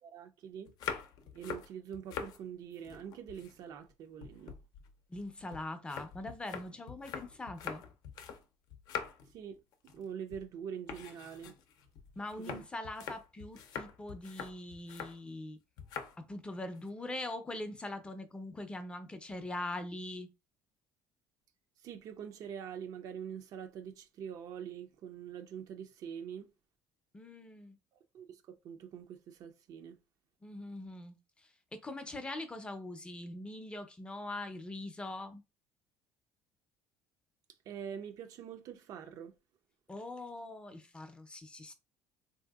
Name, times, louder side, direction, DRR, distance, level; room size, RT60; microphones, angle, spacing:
voice 1, 0.0-0.7 1.3-4.6 9.3-9.6 9.9-11.5 12.4-12.6 21.8-26.5 27.9-30.0 37.7-39.4, right 8 dB, 55° right, 0.5 m, -44 dB
sound 1, 0.7-2.4 2.7-3.9 4.2-8.4 8.7-9.3 9.7-10.0 10.3-10.5 10.9-15.2 15.8-16.2 16.5-16.9, left 7 dB, 60° left, 0.6 m, -44 dB
voice 2, 5.1-7.8 12.2-15.6 16.2-20.3 27.1-27.8 30.4-31.2 31.7-35.4 39.9-41.7, left 2 dB, 15° left, 0.6 m, -42 dB
3.3 x 2.6 x 2.3 m
cardioid pair, 130°, 7 cm